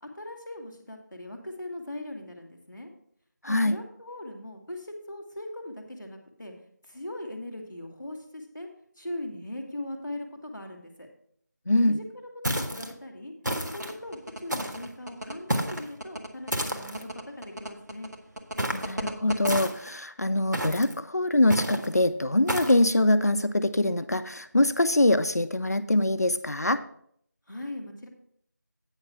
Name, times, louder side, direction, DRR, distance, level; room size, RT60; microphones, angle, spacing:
voice 1, 0.0-2.9 3.5-6.5 6.8-8.7 8.9-11.1 11.8-13.3 13.6-18.1 27.5-28.1, left 1 dB, 5° left, -13 dB, 0.7 m, -40 dB
voice 2, 3.4-3.8 11.7-12.0 18.7-26.8, left 1 dB, 60° left, 11 dB, 0.5 m, -24 dB
sound 1, 12.4-12.9 13.4-13.9 14.5-14.9 15.5-15.9 16.5-17.0 18.6-18.9 19.4-20.0 20.5-20.9 21.5-21.9 22.5-22.8, equal, 85° right, 1.5 m, -30 dB
sound 2, 13.7-19.6, right 1 dB, 70° right, 1.3 m, -36 dB
8.9 x 5.4 x 5.9 m, 0.65 s
figure-of-eight pair, 175°, 10 cm